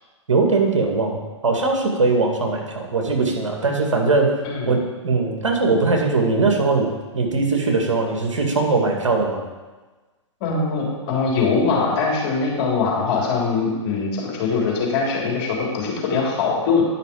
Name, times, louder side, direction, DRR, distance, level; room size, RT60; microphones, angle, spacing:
voice 1, 0.3-1.2 1.4-4.4 4.7-6.9 7.1-9.4, right 3 dB, 80° right, 1 dB, 2.2 m, -20 dB
voice 2, 10.4-16.8, left 4 dB, 50° left, -2 dB, 3.2 m, -22 dB
10.5 x 5.7 x 5.0 m, 1.3 s
hypercardioid pair, 115°, 16 cm